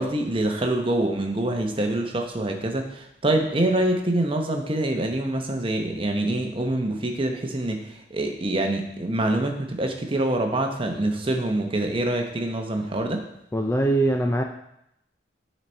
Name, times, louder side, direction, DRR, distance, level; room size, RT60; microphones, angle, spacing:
voice 1, 0.0-13.2, right 1 dB, 25° right, 4 dB, 0.8 m, -25 dB
voice 2, 13.5-14.4, right 1 dB, 15° left, 3 dB, 0.3 m, -22 dB
9.5 x 4.1 x 4.3 m, 0.80 s
head